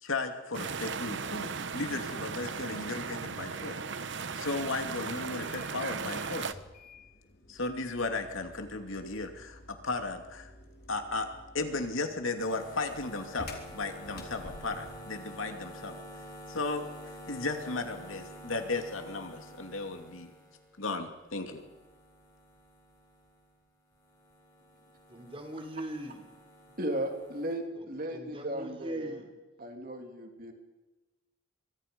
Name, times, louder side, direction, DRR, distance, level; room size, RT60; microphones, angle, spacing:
voice 1, 0.0-3.8 4.4-6.6 7.5-10.5 10.9-11.3 11.5-13.5 13.7-16.0 16.5-20.3 20.8-21.6, left 3 dB, 80° left, 5 dB, 2.6 m, -35 dB
sound 1, 0.5-6.5, right 5 dB, 60° right, 0.9 m, -37 dB
sound 2, 5.2-15.1, left 2 dB, 50° left, 3.5 m, -51 dB
sound 3, 12.4-23.6 23.9-27.5, equal, 20° left, 7.2 m, -49 dB
voice 2, 25.1-26.2 27.8-27.9 28.1-29.3, right 1 dB, 25° right, 4 dB, 3.5 m, -41 dB
voice 3, 26.8-29.2 29.6-30.5, right 1 dB, 45° right, 4 dB, 3.1 m, -35 dB
24.5 x 24.0 x 5.4 m, 1.1 s
head